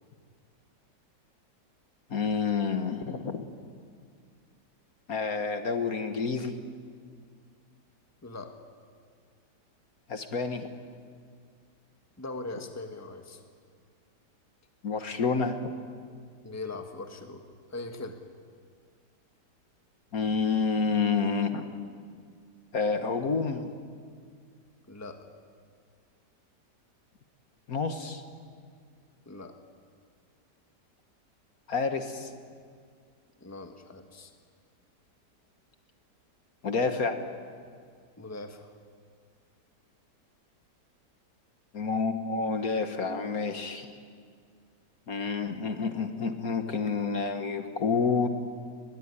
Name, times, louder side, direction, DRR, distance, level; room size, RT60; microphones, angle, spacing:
voice 1, 2.1-3.5 5.1-6.6 10.1-10.7 14.8-15.7 20.1-21.7 22.7-23.7 27.7-28.2 31.7-32.3 36.6-37.2 41.7-43.9 45.1-48.3, left 5 dB, 55° left, 7 dB, 1.8 m, -29 dB
voice 2, 8.2-8.5 12.2-13.4 16.4-17.4 17.7-18.2 24.9-25.2 29.2-29.6 33.4-34.3 38.2-38.7, left 2 dB, 10° left, 5 dB, 1.5 m, -40 dB
22.5 x 20.5 x 9.8 m, 2.1 s
omnidirectional pair, 1.8 m